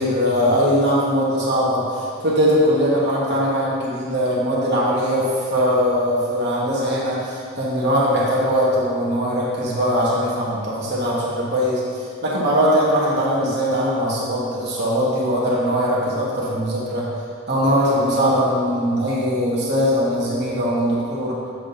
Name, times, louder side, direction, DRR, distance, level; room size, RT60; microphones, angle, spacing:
voice 1, 0.0-11.8 12.2-17.0 17.5-21.3, equal, 50° right, -6 dB, 1.5 m, -20 dB
7.6 x 3.0 x 5.3 m, 2.2 s
head